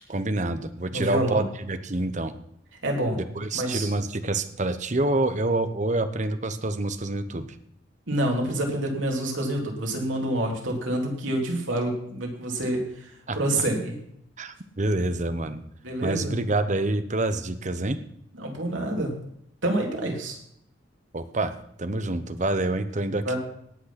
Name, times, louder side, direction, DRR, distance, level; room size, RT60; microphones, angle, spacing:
voice 1, 0.1-2.3 3.1-7.6 13.3-13.4 14.4-15.6 16.0-18.0 21.1-23.4, right 2 dB, 40° right, 10 dB, 0.9 m, -27 dB
voice 2, 0.9-1.5 2.8-3.2 3.5-3.9 8.1-14.0 15.8-16.4 18.4-19.1 19.6-20.4 23.2-23.4, right 1 dB, 85° right, 1 dB, 3.4 m, -27 dB
18.0 x 6.3 x 5.9 m, 0.72 s
head